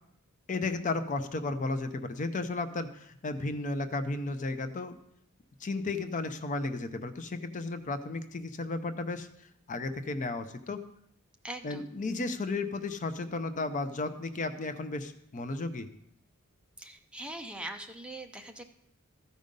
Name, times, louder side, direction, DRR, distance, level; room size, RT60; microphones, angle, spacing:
voice 1, 0.5-5.0 5.6-10.8 11.6-15.9, left 3 dB, 35° left, 9 dB, 0.6 m, -34 dB
voice 2, 11.4-11.9 16.8-18.6, right 1 dB, 5° right, 4 dB, 0.6 m, -41 dB
14.0 x 5.2 x 5.3 m, 0.73 s
head